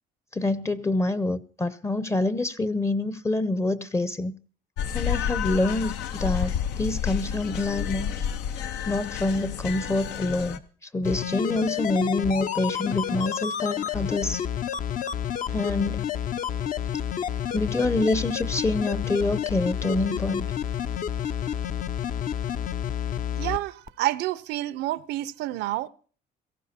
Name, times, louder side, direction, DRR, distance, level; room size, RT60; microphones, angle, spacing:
voice 1, 0.3-4.3 4.9-8.1 8.9-10.6 10.9-14.4 15.5-16.1 17.5-20.4, left 2 dB, 15° left, 0.7 m, -26 dB
sound 1, 4.8-10.6, left 9 dB, 85° left, 1.0 m, -30 dB
sound 2, 11.0-23.6 23.9-24.0, left 9 dB, 55° left, 0.8 m, -29 dB
voice 2, 23.4-25.9, right 16 dB, 85° right, 0.7 m, -29 dB
17.0 x 14.5 x 4.3 m
cardioid pair, 110°, 17 cm